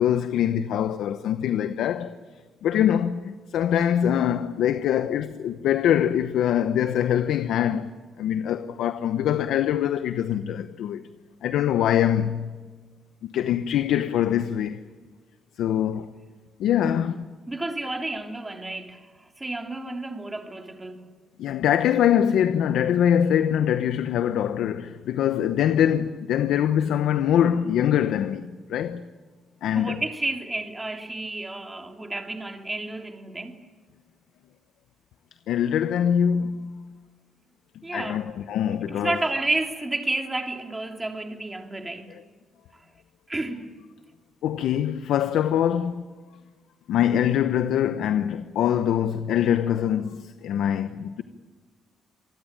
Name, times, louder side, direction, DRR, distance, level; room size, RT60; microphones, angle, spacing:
voice 1, 0.0-2.1 2.6-7.9 8.2-11.0 11.4-12.5 13.2-14.8 15.6-16.1 16.6-17.3 21.4-29.0 29.6-30.0 35.5-36.7 37.9-39.2 44.4-46.0 46.9-51.2, left 10 dB, 80° left, 0.9 m, -23 dB
voice 2, 17.5-21.1 29.7-33.6 37.8-38.2 38.9-42.1 43.3-43.7, right 2 dB, 15° right, 2.9 m, -31 dB
26.5 x 20.0 x 8.9 m
cardioid pair, 90°, 0 cm